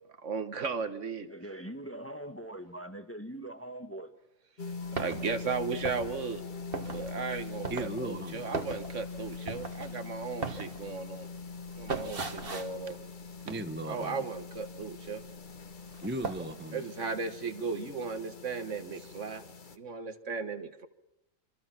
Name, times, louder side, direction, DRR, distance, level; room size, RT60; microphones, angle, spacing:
voice 1, 0.2-1.3 5.0-6.4 6.8-11.3 11.7-13.0 13.5-13.6 13.8-15.2 16.7-19.4 19.7-20.9, right 5 dB, 65° right, 10 dB, 1.6 m, -36 dB
voice 2, 1.3-4.1, right 1 dB, 10° left, 7 dB, 1.2 m, -42 dB
sound 1, 4.6-19.8, left 4 dB, 40° left, 1.2 m, -43 dB
sound 2, 4.8-14.0 14.3-15.4 15.7-16.5, right 4 dB, 45° right, 1.7 m, -39 dB
voice 3, 7.7-8.5 13.4-14.2 16.0-16.8 19.0-19.1, right 1 dB, 10° right, 9 dB, 0.8 m, -37 dB
26.5 x 24.5 x 5.9 m, 0.88 s
omnidirectional pair, 1.4 m